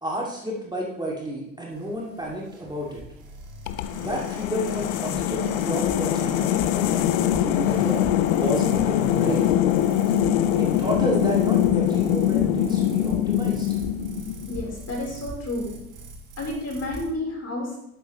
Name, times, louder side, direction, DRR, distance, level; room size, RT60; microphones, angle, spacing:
voice 1, 0.0-3.0 4.0-8.0 8.4-9.5 10.6-13.7, equal, 10° right, -3 dB, 2.5 m, -31 dB
sound 1, 1.7-17.1, right 2 dB, 60° right, 2.3 m, -41 dB
sound 2, 3.7-14.7, left 11 dB, 65° left, 0.7 m, -23 dB
voice 2, 14.5-15.7 16.4-17.8, left 1 dB, 35° left, -1 dB, 4.2 m, -30 dB
12.0 x 7.9 x 3.1 m, 0.83 s
figure-of-eight pair, 55°, 41 cm